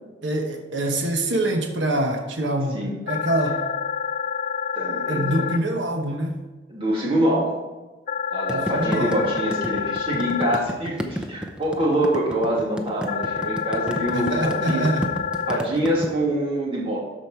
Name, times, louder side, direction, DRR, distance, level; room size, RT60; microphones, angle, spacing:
voice 1, 0.2-2.8 3.1-3.6 5.1-6.4 8.5-9.2 14.1-15.1, right 1 dB, 85° right, 4 dB, 1.1 m, -25 dB
sound 1, 3.1-5.6 8.1-10.6 13.1-15.6, left 7 dB, 45° left, 0.4 m, -28 dB
voice 2, 4.7-5.5 6.7-7.6 8.3-14.8 15.5-17.0, right 1 dB, 30° right, -5 dB, 2.7 m, -25 dB
sound 2, 8.5-16.1, equal, 5° right, 0.7 m, -31 dB
13.0 x 5.2 x 4.5 m, 1.2 s
head